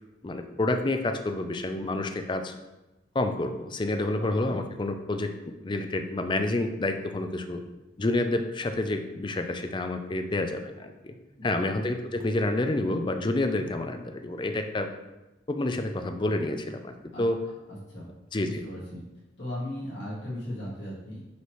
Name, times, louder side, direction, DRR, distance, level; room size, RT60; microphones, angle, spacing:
voice 1, 0.2-2.5 3.1-5.3 5.6-7.6 8.0-11.1 11.4-14.9 15.5-17.4 18.3-18.6, left 2 dB, 25° left, 6 dB, 0.4 m, -29 dB
voice 2, 4.2-4.6 11.4-11.7 17.1-17.2 17.7-18.1 18.4-19.0 19.4-21.2, left 1 dB, 65° left, -9 dB, 2.0 m, -37 dB
5.9 x 5.6 x 3.1 m, 1.0 s
head